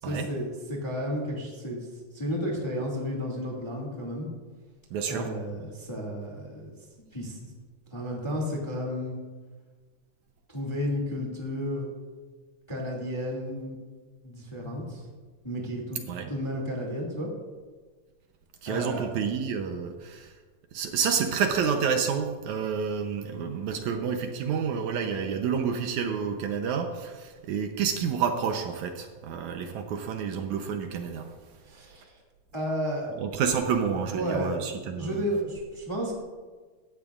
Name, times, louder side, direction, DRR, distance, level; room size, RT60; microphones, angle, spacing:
voice 1, 0.0-1.9 2.1-4.3 5.0-6.7 7.1-7.5 7.9-9.2 10.5-11.9 12.7-13.8 14.2-15.0 15.4-16.0 16.3-17.3 18.6-19.2 31.6-32.2 32.5-33.1 34.1-34.6 34.9-36.2, equal, 10° left, -1 dB, 1.5 m, -32 dB
voice 2, 4.9-5.3 5.6-5.7 16.1-16.3 18.6-20.3 20.7-31.3 33.2-35.2, right 6 dB, 75° right, 5 dB, 2.0 m, -29 dB
16.5 x 12.5 x 2.4 m, 1.4 s
omnidirectional pair, 3.7 m